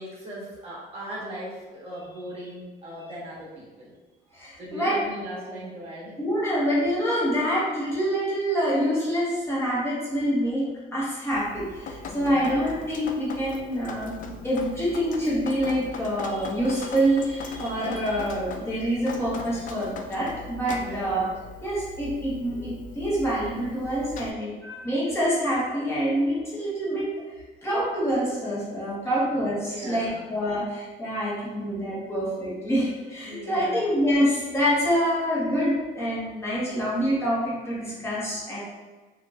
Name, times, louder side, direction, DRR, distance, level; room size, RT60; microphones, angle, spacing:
voice 1, 0.0-3.9 4.6-6.1 12.1-12.6 20.7-21.2 29.0-29.1 29.6-30.3 33.3-33.8 36.7-36.8, right 1 dB, 35° right, -6 dB, 1.5 m, -38 dB
voice 2, 4.3-5.0 6.2-21.2 21.6-27.1 27.6-38.6, equal, 15° left, -8 dB, 1.5 m, -26 dB
Drip, 11.3-24.3, left 4 dB, 50° left, 0.4 m, -39 dB
4.4 x 2.8 x 2.5 m, 1.3 s
cardioid pair, 110°, 17 cm